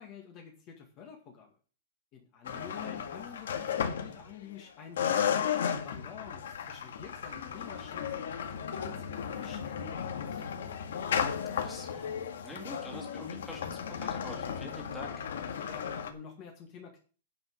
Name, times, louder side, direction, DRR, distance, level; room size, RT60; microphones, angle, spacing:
voice 1, 0.0-1.5 2.1-5.2 5.7-10.8 15.6-17.0, left 7 dB, 25° left, 2 dB, 2.0 m, -49 dB
sound 1, 2.4-4.6 5.0-16.1, left 8 dB, 80° left, 1.9 m, -34 dB
voice 2, 2.5-3.0 11.5-15.2, left 1 dB, 5° left, -2 dB, 2.5 m, -46 dB
10.5 x 5.5 x 7.8 m, 0.39 s
supercardioid pair, 170°, 0 cm